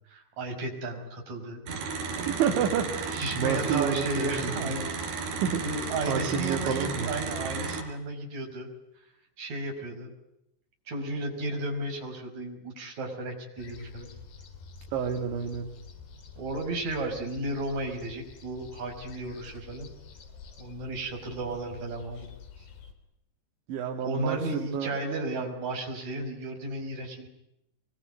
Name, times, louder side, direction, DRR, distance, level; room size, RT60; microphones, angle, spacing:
voice 1, 0.1-1.6 3.1-4.9 5.6-8.7 9.4-10.1 10.9-14.1 16.4-19.9 20.6-22.3 24.0-27.3, right 2 dB, 40° right, 1 dB, 6.7 m, -34 dB
sound 1, 1.7-7.8, right 5 dB, 60° right, 6.0 m, -34 dB
voice 2, 2.1-4.7 5.4-5.6 6.1-7.2 14.9-15.7 23.7-24.9, right 7 dB, 80° right, 3 dB, 4.5 m, -29 dB
sound 2, 13.6-22.9, left 5 dB, 65° left, 5.2 m, -48 dB
25.0 x 23.5 x 9.4 m, 0.85 s
omnidirectional pair, 5.3 m